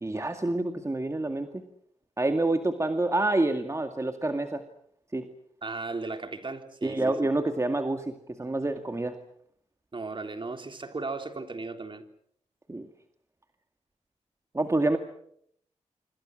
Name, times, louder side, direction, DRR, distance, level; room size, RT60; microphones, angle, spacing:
voice 1, 0.0-1.6 2.2-4.6 5.1-5.3 6.8-9.2 12.7-12.9 14.5-15.0, right 2 dB, 25° right, 6 dB, 2.1 m, -27 dB
voice 2, 5.6-7.0 9.9-12.0, right 3 dB, 45° right, 6 dB, 3.4 m, -36 dB
26.5 x 25.0 x 6.4 m, 0.69 s
cardioid pair, 60°, 12 cm